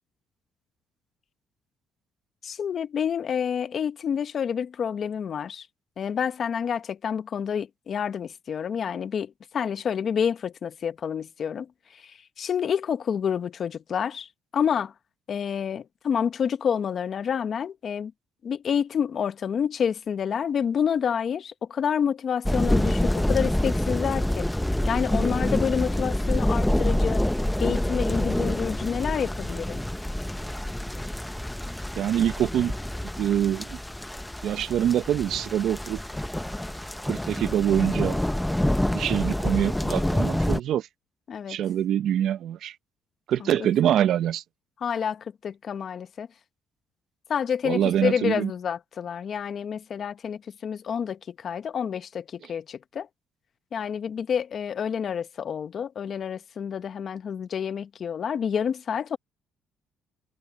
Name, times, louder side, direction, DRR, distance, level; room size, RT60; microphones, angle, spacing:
voice 1, 2.4-5.7 6.0-11.7 11.9-14.9 15.3-18.1 18.4-24.5 24.9-27.2 27.6-29.8 41.3-41.6 43.4-43.9 44.8-46.3 47.3-53.1 53.7-59.2, left 7 dB, 50° left, 0.9 m, -28 dB
sound 1, 22.4-40.6, left 1 dB, 5° left, 0.7 m, -27 dB
voice 2, 32.0-32.7 33.2-33.8 34.4-36.0 37.0-38.2 38.6-40.9 41.5-42.7 43.3-44.4 47.6-48.5, right 10 dB, 70° right, 0.9 m, -25 dB
cardioid pair, 90°, 0 cm